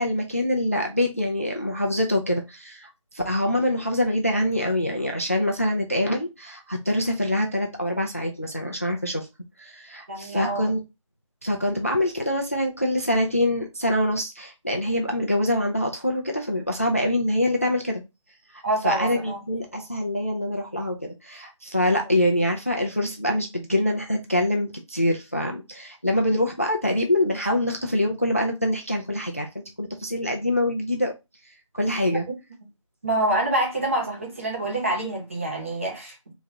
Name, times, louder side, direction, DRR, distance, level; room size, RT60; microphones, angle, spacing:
voice 1, 0.0-9.3 9.6-10.8 11.4-18.0 18.5-31.1 31.7-32.3, left 1 dB, 25° left, 0.4 m, -25 dB
voice 2, 10.1-10.7 18.6-19.4 32.3-32.4 33.0-36.3, right 1 dB, 25° right, 0.8 m, -26 dB
3.6 x 2.9 x 3.3 m
figure-of-eight pair, 175°, 17 cm